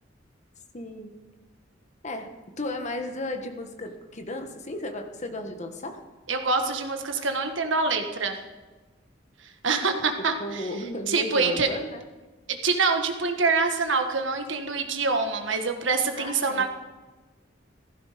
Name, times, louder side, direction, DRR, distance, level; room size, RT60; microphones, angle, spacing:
voice 1, 0.7-1.1 2.0-6.0 10.4-12.0 16.2-16.7, left 1 dB, 40° left, 5 dB, 1.4 m, -34 dB
voice 2, 6.3-8.4 9.4-10.7 11.1-11.7 12.5-16.7, right 4 dB, 70° right, 5 dB, 1.6 m, -25 dB
16.0 x 14.5 x 5.1 m, 1.2 s
head